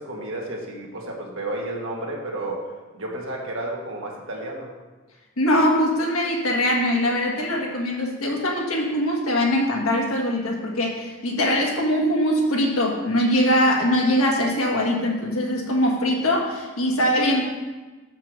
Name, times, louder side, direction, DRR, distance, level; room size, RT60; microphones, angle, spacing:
voice 1, 0.0-4.7, right 1 dB, 65° right, -2 dB, 1.7 m, -32 dB
voice 2, 5.4-17.4, equal, 85° left, -1 dB, 1.8 m, -22 dB
6.6 x 5.9 x 6.1 m, 1.3 s
head